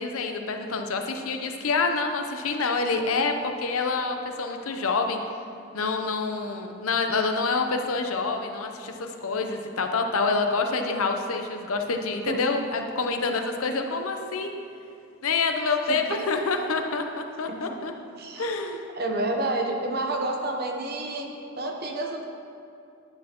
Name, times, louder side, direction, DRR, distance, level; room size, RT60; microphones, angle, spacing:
voice 1, 0.0-5.2 5.7-14.5 15.2-17.9 18.4-18.8, left 4 dB, 85° left, 5 dB, 0.7 m, -27 dB
voice 2, 15.9-16.2 17.5-17.6 18.2-18.5 18.9-21.3 21.6-22.2, right 2 dB, 45° right, 2 dB, 0.9 m, -29 dB
11.0 x 8.4 x 3.0 m, 2.5 s
head